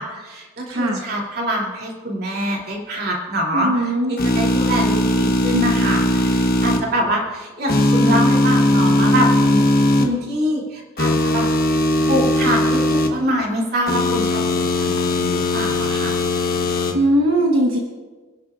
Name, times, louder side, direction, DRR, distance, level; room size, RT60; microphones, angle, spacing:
voice 1, 0.0-11.5 12.1-14.4 14.8-16.1, equal, 50° right, -1 dB, 2.8 m, -24 dB
voice 2, 0.7-1.0 3.5-4.2 16.9-17.8, right 1 dB, 75° right, 0 dB, 1.2 m, -19 dB
sound 1, 4.2-6.8 7.7-10.0 11.0-13.1 13.9-16.9, left 1 dB, 45° left, 1.2 m, -18 dB
25.5 x 11.0 x 2.5 m, 1.3 s
head